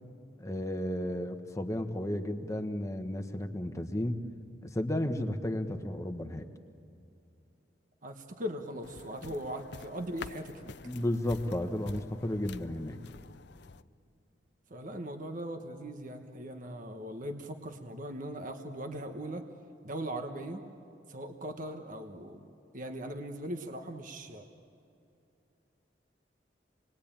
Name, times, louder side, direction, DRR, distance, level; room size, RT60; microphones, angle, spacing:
voice 1, 0.4-4.2 4.6-6.4 10.8-13.0, left 1 dB, 15° left, 6 dB, 1.2 m, -33 dB
voice 2, 8.0-10.7 14.7-19.5 19.8-20.6 21.1-22.4 22.7-24.5, right 1 dB, 45° right, 5 dB, 1.3 m, -39 dB
sound 1, 8.8-13.8, left 5 dB, 65° left, 0.6 m, -48 dB
27.5 x 20.5 x 8.8 m, 2.6 s
head